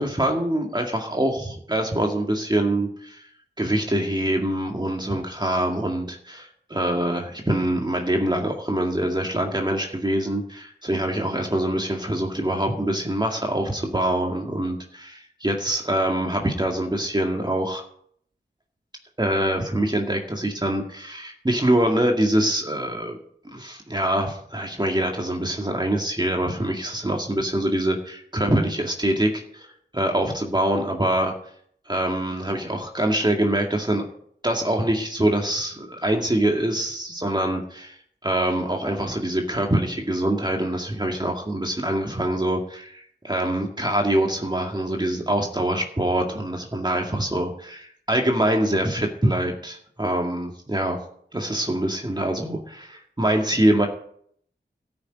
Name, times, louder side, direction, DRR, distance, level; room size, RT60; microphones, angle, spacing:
voice 1, 0.0-3.3 3.6-17.8 19.2-23.2 23.4-29.7 29.9-31.3 31.9-34.1 34.4-51.0 51.3-53.9, right 1 dB, 20° right, 1 dB, 2.0 m, -24 dB
13.0 x 6.5 x 9.1 m, 0.65 s
wide cardioid pair, 50°, 19 cm